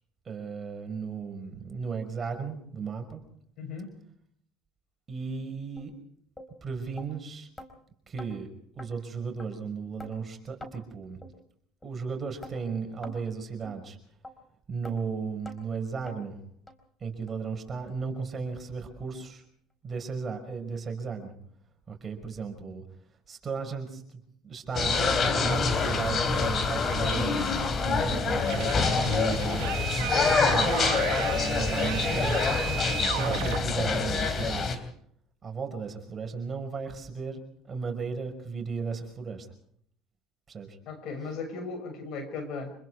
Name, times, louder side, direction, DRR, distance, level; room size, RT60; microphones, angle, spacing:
voice 1, 0.3-3.2 5.1-5.9 6.6-7.5 8.1-8.5 8.8-11.2 11.8-14.0 14.7-16.4 17.0-19.4 19.8-21.3 21.9-22.8 23.3-29.7 30.2-31.0 31.3-32.6 33.1-34.8 35.4-37.4 37.7-39.5 40.5-40.8, right 5 dB, 30° right, 4 dB, 5.5 m, -35 dB
voice 2, 3.6-3.9 40.9-42.7, left 4 dB, 60° left, 8 dB, 6.1 m, -36 dB
sound 1, 5.8-5.9 6.4-6.5 7.0-7.1 7.6-7.7 8.2-8.3 8.8-8.9 9.4-9.5 10.0-10.1 10.6-10.7 11.2-11.3 11.8-11.9 12.4-12.6 13.0-13.2 13.6-13.8 14.2-14.3 14.8-15.0 15.5-15.6 16.1-16.2 16.7-16.8 17.3-17.4 17.9-18.0 18.5-18.6, left 1 dB, 15° left, 4.4 m, -44 dB
sound 2, 24.7-34.8, left 4 dB, 40° left, 3.6 m, -26 dB
sound 3, 28.5-33.6, right 16 dB, 85° right, 1.4 m, -35 dB
27.0 x 20.5 x 4.8 m, 0.65 s
supercardioid pair, 100°, 0 cm